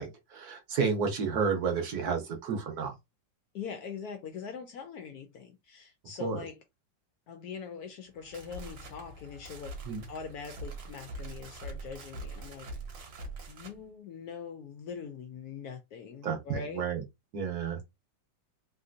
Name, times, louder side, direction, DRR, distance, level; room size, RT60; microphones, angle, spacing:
voice 1, 0.0-3.0 6.2-6.4 9.9-10.1 16.2-17.0 17.3-17.8, right 5 dB, 65° right, 1.2 m, -31 dB
voice 2, 3.5-6.6 7.3-9.7 10.1-12.7 13.5-16.9 17.7-17.8, left 6 dB, 70° left, 0.9 m, -42 dB
sound 1, 8.1-13.8, right 2 dB, 85° right, 1.6 m, -43 dB
3.3 x 2.5 x 2.5 m
omnidirectional pair, 2.0 m